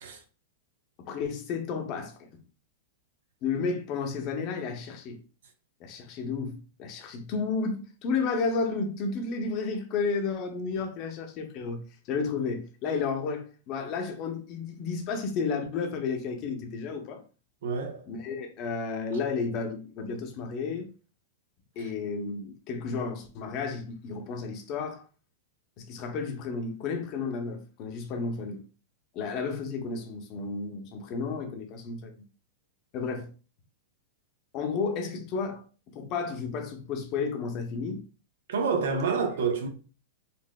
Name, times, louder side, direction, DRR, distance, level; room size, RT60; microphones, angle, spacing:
voice 1, 1.0-2.4 3.4-5.2 5.8-17.2 18.1-20.9 21.8-25.0 25.8-28.6 29.1-32.3 32.9-33.3 34.5-38.0, left 4 dB, 40° left, 0.7 m, -32 dB
voice 2, 17.6-18.0 38.5-39.7, right 5 dB, 75° right, 0.8 m, -28 dB
4.2 x 2.4 x 2.2 m
hypercardioid pair, 135°, 0 cm